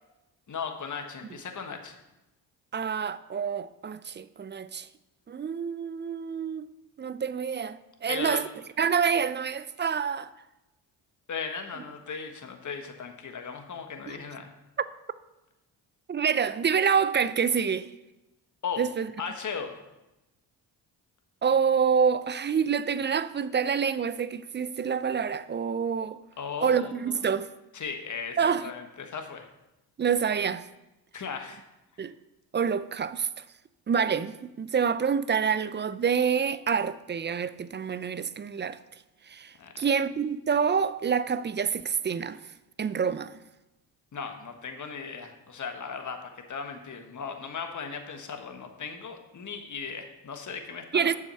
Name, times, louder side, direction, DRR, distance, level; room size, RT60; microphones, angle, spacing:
voice 1, 0.5-2.0 8.1-8.4 11.3-14.5 18.6-18.8 19.2-19.8 26.4-27.2 27.7-29.5 31.1-31.6 39.6-39.7 44.1-51.1, left 5 dB, 40° left, 1.4 m, -37 dB
voice 2, 2.7-4.9 5.3-6.7 7.0-8.5 8.8-10.3 14.1-14.2 16.1-17.9 18.8-19.1 21.4-26.2 26.6-27.5 28.4-28.6 30.0-30.6 32.0-32.1 32.5-33.4 33.9-38.8 39.3-42.4 42.8-43.4 50.9-51.2, right 6 dB, 25° right, 0.4 m, -27 dB
7.4 x 6.4 x 5.5 m
hypercardioid pair, 50°, 47 cm